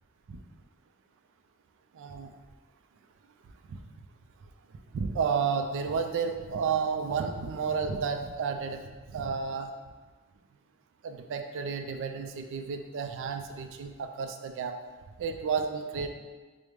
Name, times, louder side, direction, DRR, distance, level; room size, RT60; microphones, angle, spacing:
voice 1, 2.0-2.3 3.7-3.8 4.9-8.8 9.1-9.7 11.0-14.8 15.2-16.1, right 6 dB, 60° right, 6 dB, 0.3 m, -31 dB
4.9 x 2.0 x 3.1 m, 1.4 s
head